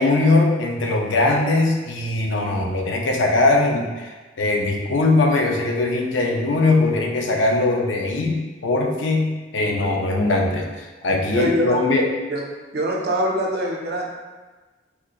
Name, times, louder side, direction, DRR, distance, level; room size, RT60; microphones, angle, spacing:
voice 1, 0.0-12.1, left 2 dB, 80° left, 1 dB, 0.5 m, -20 dB
voice 2, 11.3-11.8 12.3-12.4 12.7-14.1, equal, 55° right, -1 dB, 0.5 m, -23 dB
3.6 x 2.8 x 2.4 m, 1.3 s
head